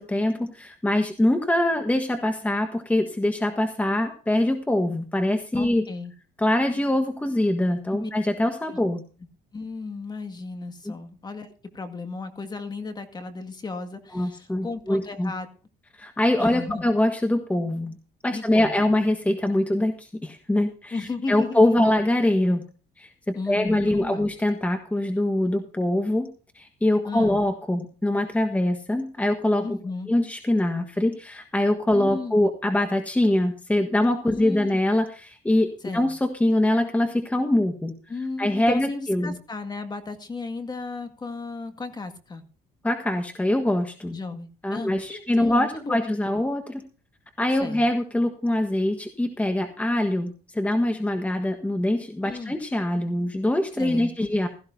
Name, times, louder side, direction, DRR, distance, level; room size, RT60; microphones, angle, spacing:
voice 1, 0.0-5.9 6.4-9.0 10.8-10.9 14.1-15.3 16.0-17.9 18.2-22.6 23.0-26.3 26.5-29.6 30.1-37.9 38.4-39.3 42.8-44.2 44.6-46.8 47.4-54.5, left 1 dB, 10° left, 5 dB, 1.5 m, -23 dB
voice 2, 5.5-6.1 7.9-8.1 8.7-8.8 9.5-15.5 16.4-16.9 18.3-18.9 20.9-21.9 23.3-24.3 27.1-27.4 29.6-30.1 31.9-32.4 34.3-34.8 35.8-36.1 38.1-42.4 44.1-46.1 47.6-47.8 52.2-52.5 53.8-54.1, left 3 dB, 25° left, 8 dB, 1.9 m, -34 dB
16.0 x 14.5 x 2.7 m, 0.36 s
cardioid pair, 110°, 17 cm